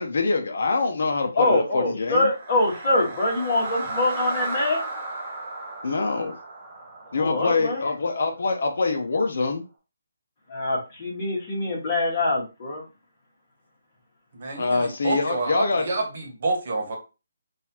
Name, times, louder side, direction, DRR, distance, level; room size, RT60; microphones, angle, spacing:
voice 1, 0.0-2.3 5.8-6.3 7.1-9.6 14.6-15.8, left 3 dB, 60° left, 0.7 m, -24 dB
voice 2, 1.3-4.9 7.1-7.8 10.5-12.8, left 2 dB, 30° left, 1.5 m, -24 dB
sound 1, 2.2-8.4, right 2 dB, 25° right, 0.8 m, -35 dB
voice 3, 14.3-17.0, right 3 dB, 40° right, 1.3 m, -28 dB
3.9 x 2.6 x 2.8 m
hypercardioid pair, 170°, 0 cm